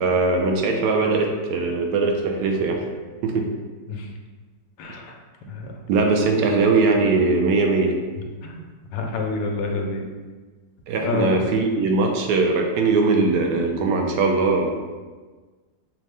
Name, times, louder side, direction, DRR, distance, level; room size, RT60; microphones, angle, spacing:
voice 1, 0.0-2.8 3.2-3.5 5.9-7.9 10.9-14.7, right 3 dB, 75° right, 2 dB, 1.1 m, -20 dB
voice 2, 4.8-5.2 5.5-5.7 8.4-8.6 8.9-10.0 11.0-11.4, left 3 dB, 85° left, 2 dB, 1.3 m, -27 dB
5.4 x 2.1 x 3.3 m, 1.4 s
omnidirectional pair, 1.9 m